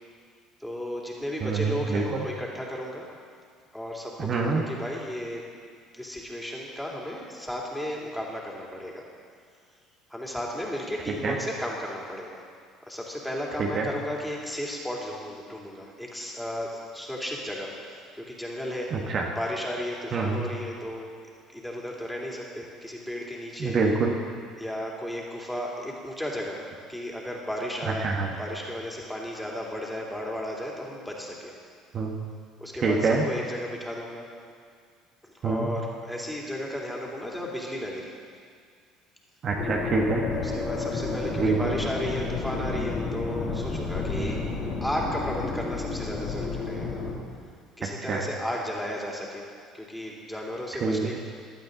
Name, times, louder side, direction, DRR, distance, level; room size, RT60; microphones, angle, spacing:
voice 1, 0.6-3.1 3.7-5.4 5.9-9.0 10.1-12.4 12.8-18.9 19.3-21.1 21.5-23.8 24.6-28.1 28.4-31.5 32.6-34.3 35.2-38.1 40.4-44.4 44.8-46.9 47.8-49.5 49.7-51.2, equal, 5° left, -2 dB, 3.0 m, -34 dB
voice 2, 1.4-2.2 4.2-4.6 11.2-11.3 13.6-13.9 18.9-19.2 20.1-20.4 23.6-24.1 28.0-28.3 31.9-32.1 32.8-33.2 35.4-35.7 39.4-40.2 41.4-41.6 44.2-44.3 48.1-48.2 50.8-51.0, right 4 dB, 45° right, -1 dB, 1.4 m, -25 dB
sound 1, 39.6-47.1, left 4 dB, 45° left, 3.1 m, -31 dB
16.0 x 12.0 x 4.0 m, 2.1 s
figure-of-eight pair, 60°, 0 cm